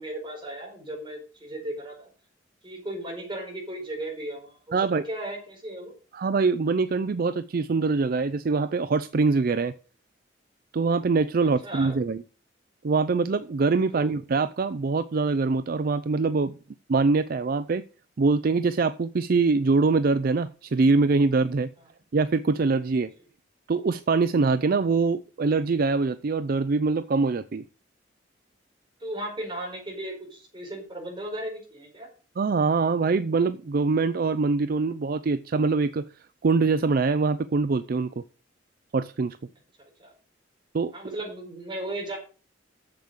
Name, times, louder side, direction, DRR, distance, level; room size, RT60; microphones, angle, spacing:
voice 1, 0.0-2.1 2.6-5.9 11.6-12.0 13.9-14.1 29.0-32.1 39.8-40.1 40.9-42.2, right 1 dB, 25° right, 4.9 m, -36 dB
voice 2, 4.7-5.0 6.1-9.7 10.7-12.2 12.8-16.5 16.9-17.8 18.2-21.7 22.1-23.1 23.7-27.6 32.4-36.0 36.4-38.2 38.9-39.4 40.7-40.9, right 4 dB, 50° right, 0.4 m, -23 dB
7.7 x 7.2 x 6.5 m
head